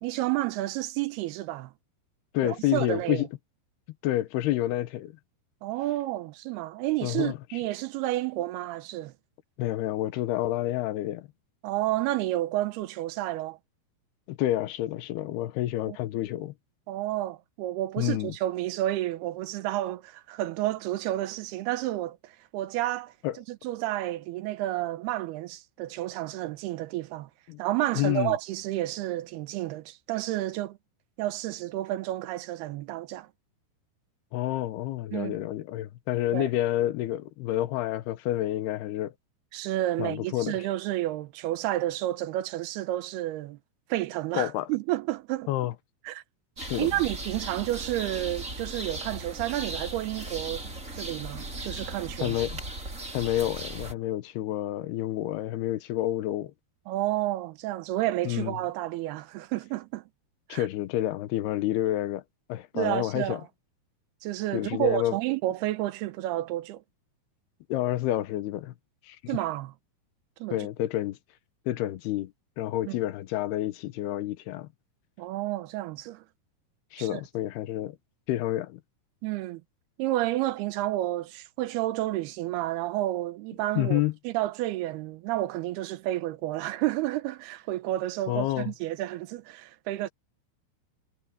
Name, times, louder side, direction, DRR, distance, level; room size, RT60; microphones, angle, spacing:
voice 1, 0.0-1.7 2.4-3.3 5.6-9.1 11.6-13.6 15.9-16.0 16.9-23.1 23.5-27.3 27.6-30.8 31.2-33.3 35.1-35.4 36.3-36.5 39.5-43.6 43.9-45.5 46.1-46.2 46.8-52.4 56.9-60.0 60.5-60.7 62.8-63.4 64.2-66.8 69.3-69.7 70.4-70.6 72.9-73.0 75.2-76.2 77.0-77.2 79.2-79.6 80.0-90.1, right 15 dB, 85° right, 2.9 m, -30 dB
voice 2, 2.3-3.3 4.0-5.1 7.0-7.4 9.6-11.3 14.3-16.5 18.0-18.4 23.2-23.4 27.5-27.6 27.9-28.4 34.3-39.1 40.0-40.6 44.4-44.7 45.5-45.7 46.7-46.9 52.2-52.6 53.1-56.5 58.3-58.5 60.5-62.2 62.5-63.4 64.5-65.2 67.7-68.7 69.0-69.3 70.5-71.2 71.7-74.7 76.9-78.0 78.3-78.8 83.8-84.1 88.3-88.7, left 14 dB, 85° left, 3.0 m, -29 dB
sound 1, 46.6-53.9, right 2 dB, 20° right, 5.1 m, -37 dB
omnidirectional pair, 4.5 m